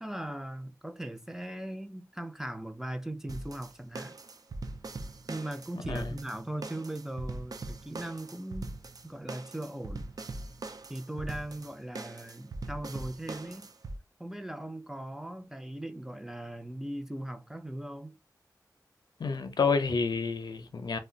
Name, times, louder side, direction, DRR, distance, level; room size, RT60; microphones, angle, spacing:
voice 1, 0.0-4.2 5.3-8.7 9.0-10.0 10.9-13.7 14.2-18.2, right 1 dB, 5° right, 0.5 m, -39 dB
sound 1, 3.3-14.0, right 2 dB, 60° right, 0.4 m, -41 dB
voice 2, 19.2-21.0, left 5 dB, 90° left, 0.5 m, -29 dB
2.4 x 2.1 x 3.8 m
wide cardioid pair, 85°, 7 cm